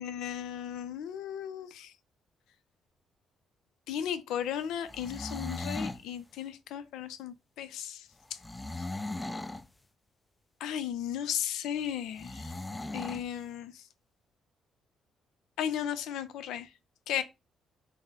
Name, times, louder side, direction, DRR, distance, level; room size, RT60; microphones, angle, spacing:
voice 1, 0.0-1.9 3.9-8.0 10.6-12.4 12.9-13.7 15.6-16.7 17.1-17.2, left 9 dB, 90° left, 0.5 m, -35 dB
sound 1, 4.8-6.0 8.4-9.7 12.2-13.3, left 2 dB, 15° left, 0.3 m, -37 dB
3.9 x 2.1 x 3.7 m
cardioid pair, 90°, 0 cm